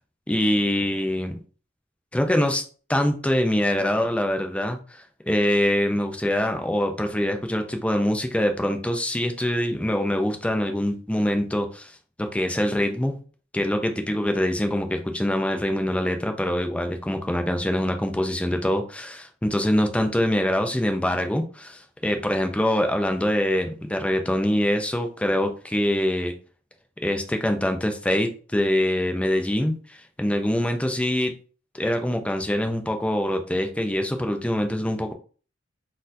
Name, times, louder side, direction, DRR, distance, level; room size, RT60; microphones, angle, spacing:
voice 1, 0.3-1.4 2.1-2.6 2.9-11.9 12.2-13.2 13.5-26.3 27.0-31.3 31.7-35.1, left 1 dB, 5° left, 5 dB, 0.4 m, -24 dB
4.0 x 2.6 x 2.6 m, 0.39 s
head